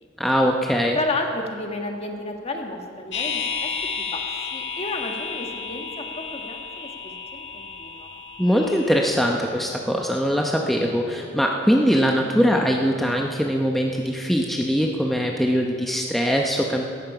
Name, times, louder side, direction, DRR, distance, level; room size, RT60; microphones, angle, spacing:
voice 1, 0.2-1.0 8.4-16.8, equal, ahead, 0 dB, 0.8 m, -22 dB
voice 2, 0.9-3.7 4.0-4.2 4.5-8.1, left 2 dB, 35° left, 3 dB, 1.5 m, -32 dB
sound 1, 3.1-9.0, left 5 dB, 85° left, 1.6 m, -32 dB
17.0 x 14.0 x 5.0 m, 2.4 s
head